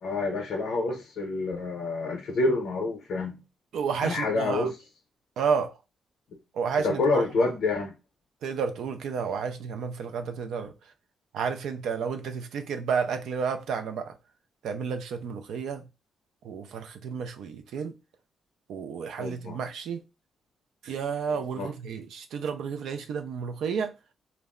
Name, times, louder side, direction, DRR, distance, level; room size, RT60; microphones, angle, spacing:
voice 1, 0.0-3.4 4.0-4.7 6.8-7.9 19.2-19.6 21.3-21.7, left 3 dB, 65° left, 0.6 m, -28 dB
voice 2, 3.7-4.7 5.4-5.7 6.5-7.5 8.4-10.7 11.3-14.1 14.6-15.8 16.4-17.9 18.7-20.0 20.8-23.9, right 6 dB, 75° right, 0.4 m, -31 dB
2.3 x 2.0 x 3.5 m
cardioid pair, 165°, 0 cm